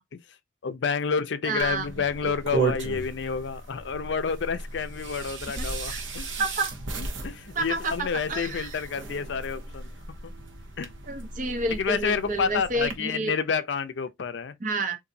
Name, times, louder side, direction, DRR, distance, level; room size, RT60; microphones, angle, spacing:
voice 1, 0.6-6.4 7.0-9.9 10.8-10.9 11.7-14.5, left 5 dB, 65° left, 0.5 m, -29 dB
voice 2, 1.4-1.9 2.2-2.3 5.6-6.0 6.4-6.7 7.6-8.8 11.1-13.3 14.6-15.0, right 2 dB, 45° right, 0.6 m, -30 dB
sound 1, 1.6-13.0, right 3 dB, 75° right, 0.9 m, -35 dB
3.9 x 2.6 x 2.6 m
head